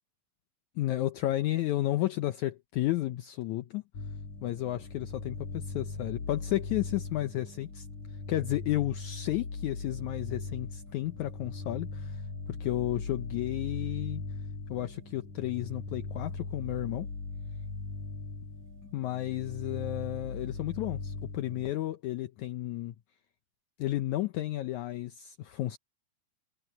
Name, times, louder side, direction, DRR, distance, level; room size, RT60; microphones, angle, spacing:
voice 1, 0.8-3.8 4.4-7.9 8.3-12.2 12.5-14.3 14.7-17.1 18.9-22.9 23.8-25.8, left 15 dB, 80° left, 1.7 m, -32 dB
sound 1, 3.9-21.7, left 3 dB, 50° left, 5.0 m, -39 dB
omnidirectional pair, 4.3 m